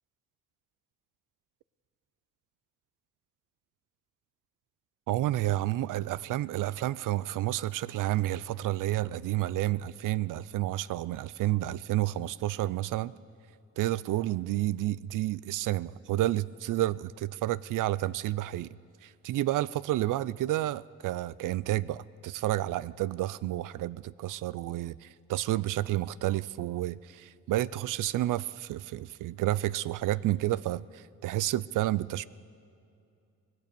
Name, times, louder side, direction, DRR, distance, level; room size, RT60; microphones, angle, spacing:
voice 1, 5.1-13.1 13.8-18.7 19.0-32.3, right 15 dB, 90° right, 19 dB, 0.5 m, -30 dB
24.5 x 18.5 x 6.9 m, 2.5 s
cardioid pair, 130°, 31 cm